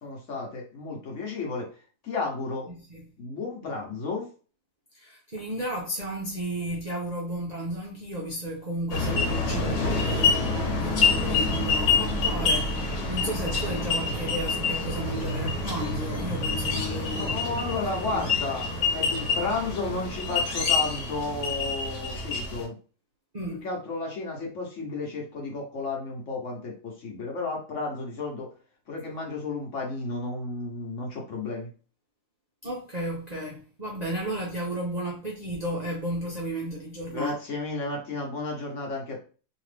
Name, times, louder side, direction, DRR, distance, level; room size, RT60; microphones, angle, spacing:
voice 1, 0.0-1.7 2.0-2.7 3.2-4.3 17.1-22.8 23.6-28.5 28.9-31.7 37.1-39.2, left 3 dB, 55° left, 1.1 m, -32 dB
voice 2, 4.9-10.5 10.8-12.7 13.1-17.3 17.6-18.3 23.3-23.6 32.6-37.3, right 1 dB, 50° right, 0.5 m, -33 dB
sound 1, 8.9-22.6, left 4 dB, 80° left, 1.4 m, -27 dB
2.9 x 2.4 x 3.3 m
omnidirectional pair, 1.6 m